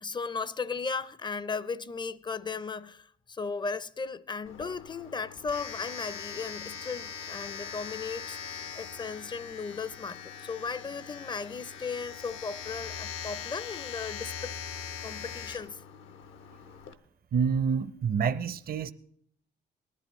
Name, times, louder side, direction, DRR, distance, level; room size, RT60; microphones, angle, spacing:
voice 1, 0.0-14.5 15.0-15.8, left 5 dB, 25° left, 0.4 m, -36 dB
Domestic sounds home sounds, 4.4-16.9, left 7 dB, 80° left, 0.8 m, -41 dB
voice 2, 17.3-18.9, right 6 dB, 50° right, 0.6 m, -27 dB
19.0 x 11.5 x 3.0 m
cardioid pair, 90°, 20 cm